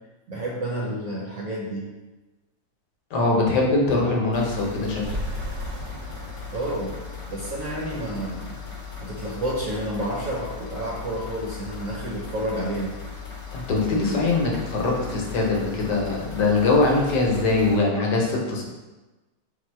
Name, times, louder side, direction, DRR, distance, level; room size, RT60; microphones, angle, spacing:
voice 1, 0.3-1.9 6.5-7.0 7.3-8.6 9.0-12.9, right 1 dB, 60° right, -3 dB, 0.9 m, -30 dB
voice 2, 3.1-5.0 13.5-18.6, left 3 dB, 75° left, -1 dB, 1.4 m, -22 dB
sound 1, 4.3-17.8, left 6 dB, 35° left, 0.7 m, -38 dB
sound 2, 5.0-8.4, right 1 dB, 80° right, 1.2 m, -36 dB
3.8 x 2.5 x 4.4 m, 1.2 s
omnidirectional pair, 1.9 m